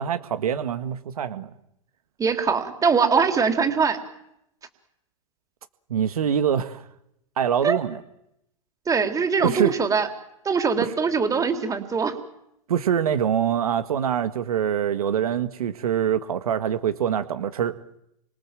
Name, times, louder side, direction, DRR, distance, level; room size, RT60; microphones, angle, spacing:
voice 1, 0.0-1.5 5.9-6.9 7.4-8.0 9.4-9.7 10.8-10.9 12.7-17.7, right 9 dB, 80° right, 11 dB, 1.8 m, -24 dB
voice 2, 2.2-4.0 7.6-7.8 8.9-10.1 10.5-12.2, right 5 dB, 20° right, 7 dB, 3.7 m, -22 dB
29.5 x 26.0 x 7.7 m, 0.81 s
hypercardioid pair, 115°, 19 cm